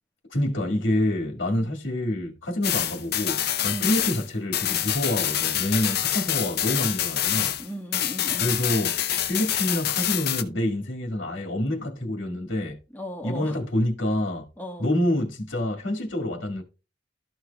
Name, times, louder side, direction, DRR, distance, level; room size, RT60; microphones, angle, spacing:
voice 1, 0.3-7.6 8.4-12.8 13.2-14.5 14.8-16.6, left 1 dB, 70° left, 1.9 m, -27 dB
voice 2, 1.5-1.8 3.7-4.0 7.6-8.6 12.9-13.6 14.6-14.9, equal, 10° left, 1.3 m, -37 dB
sound 1, 2.6-7.7 7.9-10.4, left 11 dB, 50° left, 0.6 m, -26 dB
13.0 x 6.3 x 2.3 m
head